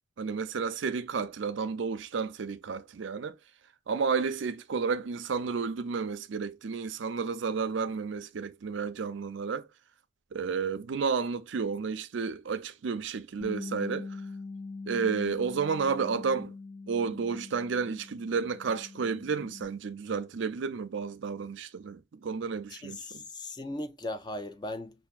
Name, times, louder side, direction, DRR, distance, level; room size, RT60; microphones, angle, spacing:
voice 1, 0.2-3.4 3.9-9.7 10.3-14.2 14.9-16.5 16.9-23.2, right 5 dB, 75° right, 0.5 m, -31 dB
Bass guitar, 13.4-19.7, left 3 dB, 90° left, 1.1 m, -43 dB
voice 2, 22.7-25.1, left 1 dB, 20° left, 0.4 m, -38 dB
5.7 x 2.6 x 2.4 m
head